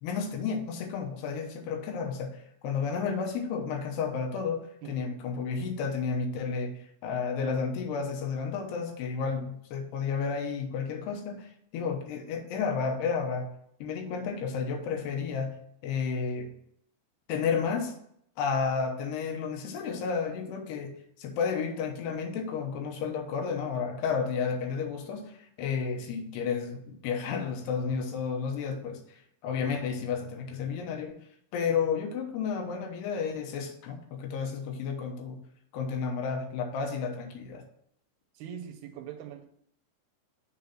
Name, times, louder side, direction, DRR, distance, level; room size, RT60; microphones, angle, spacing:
voice 1, 0.0-13.5 13.8-15.6 15.8-16.5 17.3-17.9 18.4-31.2 31.5-35.4 35.7-37.6, left 5 dB, 80° left, 3 dB, 3.1 m, -32 dB
voice 2, 38.4-39.5, right 9 dB, 80° right, 7 dB, 2.4 m, -42 dB
7.0 x 3.9 x 5.7 m, 0.71 s
omnidirectional pair, 4.8 m